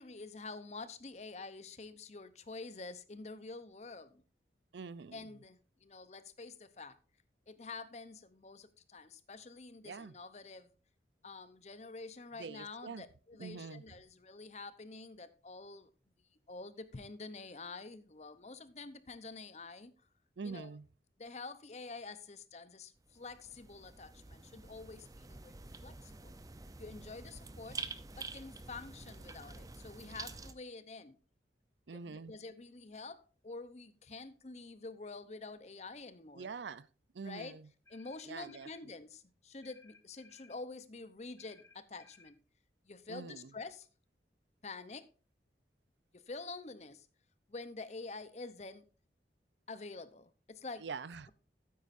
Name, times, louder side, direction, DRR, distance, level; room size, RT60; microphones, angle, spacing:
voice 1, 0.0-4.2 5.1-7.0 7.5-10.7 11.2-15.9 16.5-19.9 20.4-20.7 21.2-25.5 25.8-26.4 26.8-27.8 28.1-31.2 31.9-36.5 37.2-37.6 37.9-42.4 42.9-43.9 44.6-45.1 46.1-47.1 47.5-48.8 49.7-50.9, left 3 dB, 40° left, 0.7 m, -48 dB
voice 2, 4.7-5.3 9.8-10.1 12.4-13.0 13.4-13.8 20.4-20.9 31.9-32.3 36.4-36.9 37.1-37.6 38.3-38.7 43.1-43.5 50.8-51.3, right 5 dB, 80° right, 0.5 m, -45 dB
sound 1, 23.0-30.5, right 4 dB, 20° right, 0.6 m, -48 dB
sound 2, 37.8-38.8 39.6-40.6 41.4-42.4, left 4 dB, 15° left, 1.3 m, -62 dB
12.5 x 9.4 x 2.6 m
head